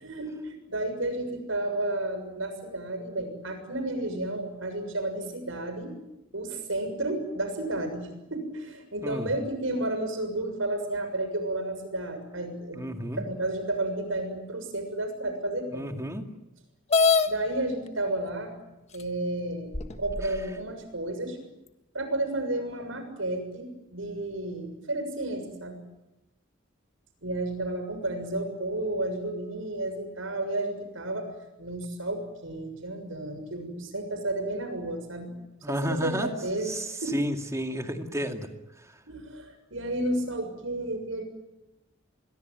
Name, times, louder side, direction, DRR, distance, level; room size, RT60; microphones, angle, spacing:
voice 1, 0.0-6.0 6.3-12.8 13.2-15.9 17.3-18.5 18.9-19.7 20.0-21.4 21.9-25.8 27.2-31.3 31.6-35.4 35.7-36.8 37.0-37.2 39.1-41.2, right 1 dB, 80° right, 8 dB, 6.9 m, -32 dB
voice 2, 12.7-13.2 15.7-16.3 35.6-36.3 36.6-38.5 38.8-39.0, equal, 15° right, 5 dB, 2.3 m, -32 dB
sound 1, 16.9-17.3 18.3-18.4 19.0-19.1 19.7-20.4, left 4 dB, 35° left, 1.6 m, -23 dB
25.5 x 22.5 x 9.3 m, 0.96 s
head